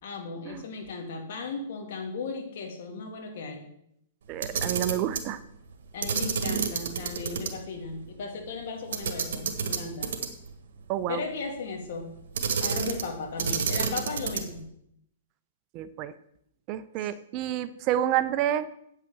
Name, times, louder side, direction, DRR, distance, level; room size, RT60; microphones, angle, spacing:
voice 1, 0.0-3.6 5.9-10.1 11.1-12.1 12.6-14.6 17.0-17.1, left 4 dB, 60° left, 2 dB, 2.0 m, -36 dB
voice 2, 4.3-5.4 10.9-11.2 15.7-16.1 16.7-18.7, right 11 dB, 35° right, 14 dB, 0.6 m, -29 dB
Camera, 4.3-5.3 6.0-7.5 7.8-7.9 8.9-10.5 12.3-13.1 13.4-14.6, right 6 dB, 70° right, 1.7 m, -29 dB
8.8 x 5.7 x 7.2 m, 0.75 s
hypercardioid pair, 145°, 0 cm